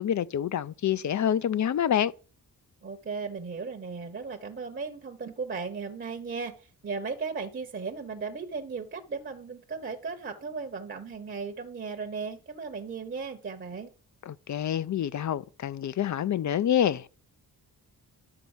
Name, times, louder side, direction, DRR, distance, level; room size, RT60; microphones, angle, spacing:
voice 1, 0.0-2.1 14.2-17.1, left 10 dB, 50° left, 0.5 m, -27 dB
voice 2, 2.8-13.9, right 4 dB, 30° right, 0.9 m, -36 dB
11.0 x 4.1 x 7.1 m
wide cardioid pair, 130°, 39 cm